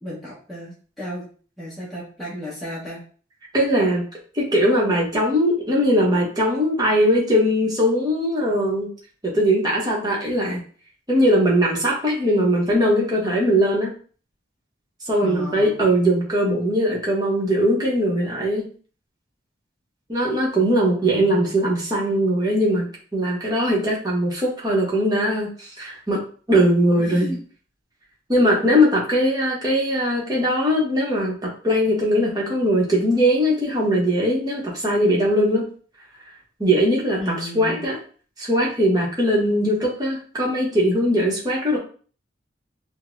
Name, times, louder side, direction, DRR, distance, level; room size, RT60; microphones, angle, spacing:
voice 1, 0.0-1.3 1.6-3.0 15.2-15.7 21.0-21.5 26.9-27.4 37.2-37.8, equal, ahead, -9 dB, 1.1 m, -34 dB
voice 2, 3.5-4.1 4.3-8.9 9.2-10.6 11.1-13.9 15.1-18.6 20.1-27.3 28.3-35.7 36.6-37.2 37.5-38.0 38.4-41.8, equal, 20° right, -4 dB, 0.9 m, -20 dB
5.1 x 2.1 x 2.5 m, 0.42 s
head